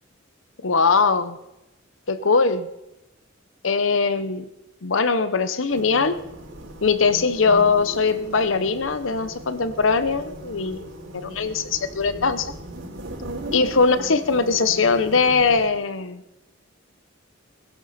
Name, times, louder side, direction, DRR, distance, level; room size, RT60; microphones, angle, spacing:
voice 1, 0.6-1.4 2.1-2.7 3.6-4.5 4.8-6.2 6.8-12.5 13.5-16.4, left 4 dB, 85° left, 12 dB, 0.9 m, -21 dB
sound 1, 5.7-15.7, right 1 dB, 80° right, 4.4 m, -38 dB
21.0 x 11.0 x 4.2 m, 0.92 s
head